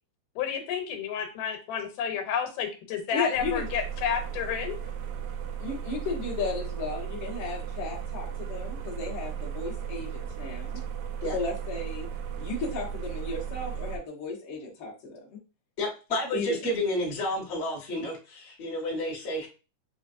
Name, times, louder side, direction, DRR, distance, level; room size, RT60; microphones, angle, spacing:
voice 1, 0.4-4.8, left 7 dB, 85° left, 4 dB, 2.4 m, -31 dB
voice 2, 3.1-3.7 5.6-10.8 11.3-12.1 12.4-15.2 16.3-16.5, left 3 dB, 50° left, -3 dB, 1.6 m, -34 dB
sound 1, 3.3-14.0, right 8 dB, 80° right, 2.0 m, -36 dB
voice 3, 15.8-19.5, left 1 dB, 35° left, -3 dB, 1.1 m, -30 dB
7.0 x 2.4 x 2.5 m, 0.32 s
omnidirectional pair, 3.7 m